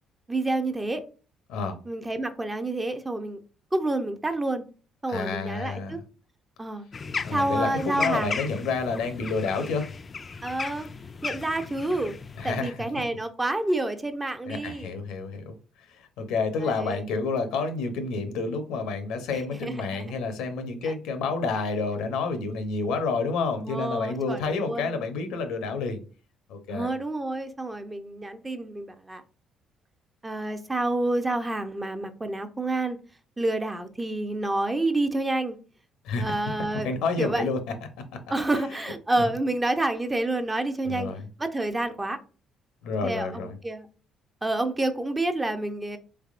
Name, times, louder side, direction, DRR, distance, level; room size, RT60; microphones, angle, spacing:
voice 1, 0.3-1.0 1.9-3.4 3.7-4.6 5.0-6.0 6.6-6.9 7.3-8.4 10.4-10.9 11.2-12.1 12.4-14.9 16.6-17.0 19.5-20.1 20.8-20.9 23.6-25.1 26.7-29.2 30.2-33.0 33.4-35.6 36.2-36.9 37.2-37.4 38.3-41.1 41.4-42.2 43.0-43.9 44.4-46.0, right 2 dB, 20° right, 0.5 m, -28 dB
voice 2, 5.1-6.0 7.2-9.9 12.4-12.8 14.5-26.0 26.5-26.9 36.0-37.6 39.2-39.3 40.8-41.3 42.8-43.6, left 4 dB, 85° left, 0.7 m, -29 dB
sound 1, 6.9-12.6, left 5 dB, 35° left, 0.3 m, -36 dB
3.4 x 3.2 x 2.4 m
supercardioid pair, 80°, 0 cm